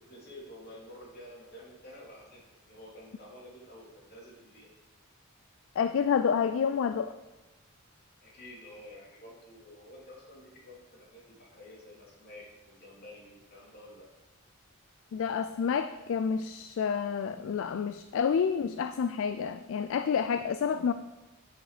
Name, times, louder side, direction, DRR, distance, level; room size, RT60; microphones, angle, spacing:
voice 1, 0.0-4.7 8.2-14.1, left 1 dB, 45° left, -5 dB, 3.0 m, -50 dB
voice 2, 5.8-7.2 15.1-20.9, left 6 dB, 65° left, 11 dB, 0.3 m, -29 dB
9.7 x 5.2 x 5.0 m, 1.1 s
head